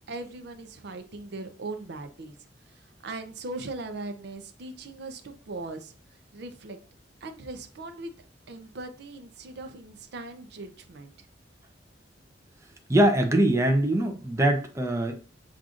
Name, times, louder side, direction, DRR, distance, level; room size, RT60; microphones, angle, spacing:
voice 1, 0.1-2.3 3.0-5.9 6.3-6.8 7.2-8.1 8.5-11.3, right 2 dB, 65° right, 7 dB, 0.5 m, -39 dB
voice 2, 12.9-15.2, right 1 dB, 15° right, 4 dB, 0.6 m, -22 dB
7.2 x 2.5 x 2.5 m, 0.35 s
head